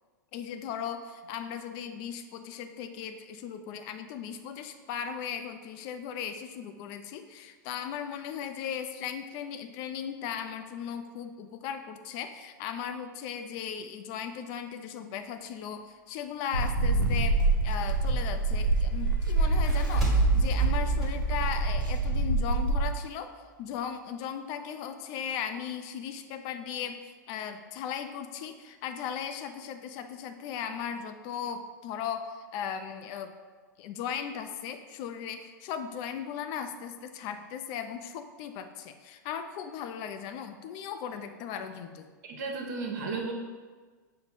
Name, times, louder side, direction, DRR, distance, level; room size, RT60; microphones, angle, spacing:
voice 1, 0.3-23.3 23.6-33.3 33.8-42.1, left 8 dB, 45° left, 9 dB, 0.3 m, -37 dB
sound 1, 16.5-23.0, right 2 dB, 90° right, 0.4 m, -26 dB
sound 2, 19.4-22.8, right 4 dB, ahead, 1.4 m, -31 dB
voice 2, 42.2-43.3, right 4 dB, 60° right, 2 dB, 0.8 m, -34 dB
5.5 x 2.1 x 4.1 m, 1.4 s
hypercardioid pair, 95°, 10 cm